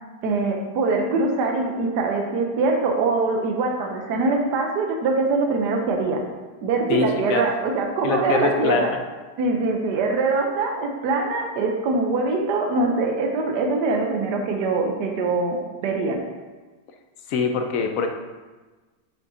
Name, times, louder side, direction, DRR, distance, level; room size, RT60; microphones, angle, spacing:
voice 1, 0.2-6.2 6.6-8.9 9.4-15.6 15.8-16.2, right 3 dB, 85° right, 2 dB, 1.4 m, -23 dB
voice 2, 6.9-7.4 8.0-8.9 17.3-18.1, left 5 dB, 65° left, 4 dB, 1.0 m, -23 dB
8.2 x 5.9 x 2.7 m, 1.3 s
omnidirectional pair, 1.8 m